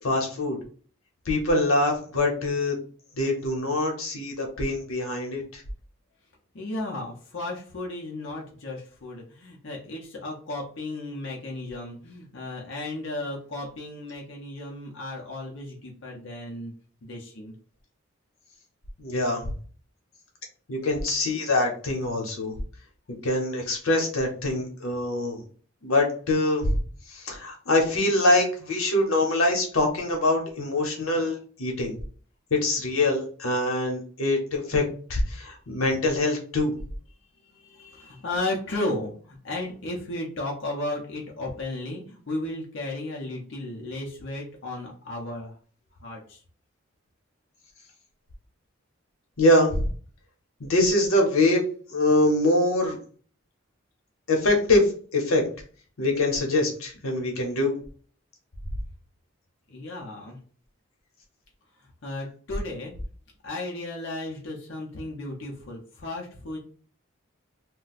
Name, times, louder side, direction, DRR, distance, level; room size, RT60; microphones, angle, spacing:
voice 1, 0.0-0.6 1.3-2.8 3.2-5.6 19.0-19.5 20.7-22.6 23.2-25.4 25.8-26.8 27.1-31.9 32.5-34.8 35.1-36.7 49.4-49.8 50.6-51.6 51.9-53.0 54.3-55.4 56.0-57.8, left 2 dB, 90° left, 1 dB, 0.9 m, -24 dB
voice 2, 6.5-16.7 17.0-17.5 37.5-45.5 46.0-46.4 59.7-60.4 62.0-62.9 63.4-66.6, left 2 dB, 60° left, -2 dB, 0.6 m, -34 dB
2.4 x 2.2 x 4.0 m, 0.43 s
head